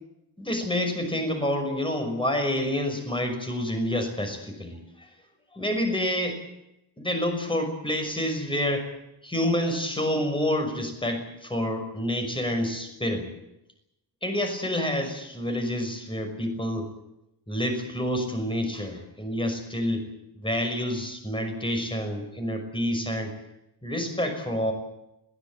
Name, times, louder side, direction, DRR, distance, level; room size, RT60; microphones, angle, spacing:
voice 1, 0.4-4.8 5.5-6.4 7.0-8.9 9.2-13.3 14.2-16.9 17.5-20.1 20.4-23.3 23.8-24.7, left 1 dB, 10° left, 5 dB, 5.9 m, -28 dB
22.0 x 18.5 x 9.0 m, 0.85 s
wide cardioid pair, 165°, 42 cm